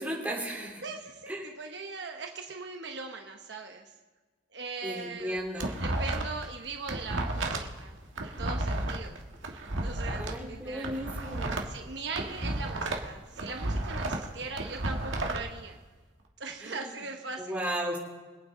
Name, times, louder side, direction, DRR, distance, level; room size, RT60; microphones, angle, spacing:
voice 1, 0.0-0.8 1.3-1.5 4.8-5.8 10.2-11.6 16.6-16.9 17.4-18.0, equal, 10° right, -3 dB, 3.5 m, -35 dB
voice 2, 0.8-3.9 4.5-5.4 5.8-8.0 8.2-9.2 9.8-10.9 11.7-15.8 16.4-17.6, right 4 dB, 60° right, 3 dB, 1.1 m, -40 dB
sound 1, 5.2-6.5 6.7-10.3 10.7-13.1 13.4-15.4, right 2 dB, 85° right, 1.6 m, -32 dB
25.0 x 9.0 x 3.8 m, 1.3 s
head